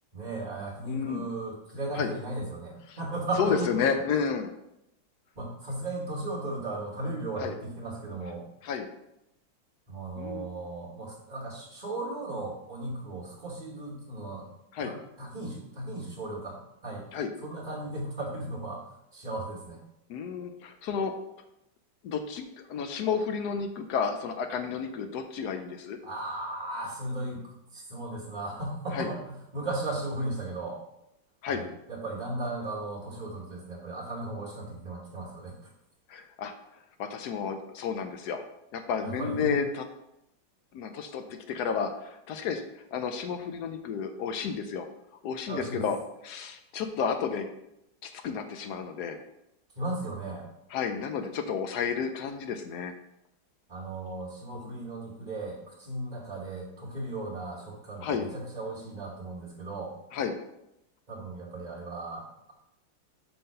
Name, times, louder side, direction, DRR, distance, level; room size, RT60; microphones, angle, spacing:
voice 1, 0.1-4.0 5.3-8.4 9.9-14.4 14.8-17.0 17.4-18.9 19.1-19.8 26.0-30.8 31.5-35.5 39.0-39.5 45.5-45.8 49.7-50.5 53.7-59.9 61.1-62.5, right 2 dB, 25° right, -6 dB, 1.2 m, -36 dB
voice 2, 0.9-1.2 2.0-2.1 2.9-3.0 3.4-4.5 7.4-7.5 8.6-8.9 10.2-10.5 14.7-14.9 17.1-17.3 20.1-21.1 22.0-26.0 28.9-29.1 31.4-31.6 36.1-36.5 37.0-38.4 38.7-39.8 40.7-42.6 42.9-44.9 45.2-46.0 46.2-47.5 48.0-49.2 50.7-52.9 54.5-54.8 58.0-58.3 60.1-60.4, left 6 dB, 70° left, 7 dB, 1.0 m, -31 dB
5.5 x 3.8 x 5.4 m, 0.84 s
omnidirectional pair, 2.1 m